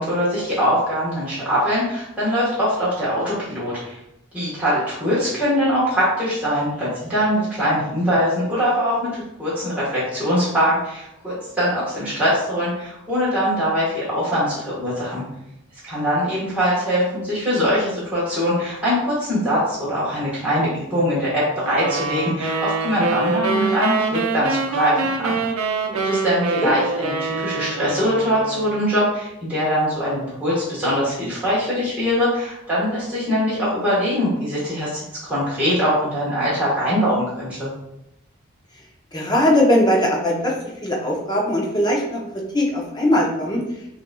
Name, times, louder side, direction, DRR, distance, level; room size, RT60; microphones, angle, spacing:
voice 1, 0.0-4.0 4.3-15.2 15.8-25.4 26.0-37.7, equal, 5° right, -10 dB, 1.2 m, -22 dB
sound 1, 21.7-28.8, right 3 dB, 90° right, 0.6 m, -25 dB
voice 2, 39.1-40.5 40.8-42.2 42.5-43.6, left 1 dB, 20° left, -2 dB, 0.7 m, -19 dB
5.7 x 2.7 x 2.2 m, 0.84 s
head